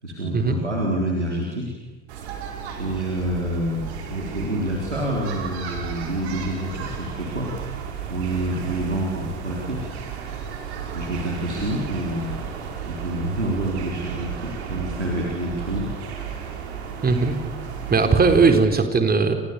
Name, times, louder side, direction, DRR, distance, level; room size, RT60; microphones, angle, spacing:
voice 1, 0.0-1.7 2.8-7.5 8.1-9.9 10.9-12.5 12.8-16.0, right 1 dB, 90° right, -3 dB, 4.2 m, -27 dB
sound 1, 2.1-18.6, right 7 dB, 70° right, 5.1 m, -34 dB
voice 2, 17.0-17.4 17.9-19.4, right 4 dB, 25° right, 6 dB, 4.2 m, -18 dB
29.5 x 28.0 x 7.0 m, 1.2 s
figure-of-eight pair, 60°, 34 cm